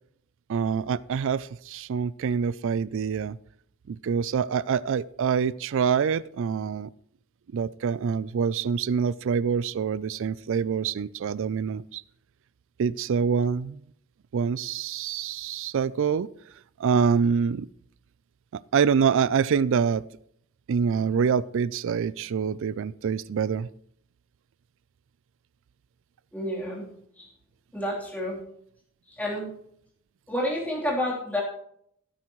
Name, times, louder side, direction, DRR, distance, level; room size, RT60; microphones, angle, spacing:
voice 1, 0.5-3.4 3.9-6.9 7.5-12.0 12.8-13.8 14.3-16.3 16.8-17.7 18.7-20.0 20.7-23.7, right 6 dB, 65° right, 20 dB, 0.4 m, -25 dB
voice 2, 26.3-26.9 27.2-27.3 27.7-28.4 29.1-29.5 30.3-31.4, left 1 dB, 5° left, -4 dB, 3.4 m, -29 dB
17.0 x 9.6 x 3.1 m, 0.70 s
head